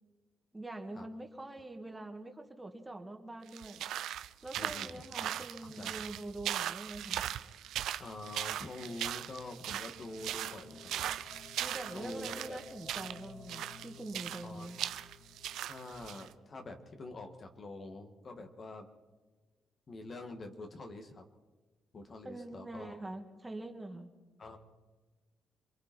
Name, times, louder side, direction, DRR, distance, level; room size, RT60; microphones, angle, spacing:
voice 1, 0.5-3.8 4.4-7.2 11.6-14.8 22.2-24.1, right 2 dB, 15° right, 4 dB, 2.3 m, -44 dB
sound 1, 3.5-16.3, right 11 dB, 80° right, 0.7 m, -39 dB
voice 2, 4.6-5.3 5.6-6.0 8.0-11.1 11.9-12.6 14.4-14.7 15.7-18.9 19.9-21.2 21.9-23.0 24.4-24.6, left 2 dB, 40° left, 4 dB, 2.2 m, -46 dB
sound 2, 6.9-17.9, left 5 dB, 65° left, 3.3 m, -57 dB
27.5 x 23.0 x 4.7 m, 1.3 s
cardioid pair, 90°, 0 cm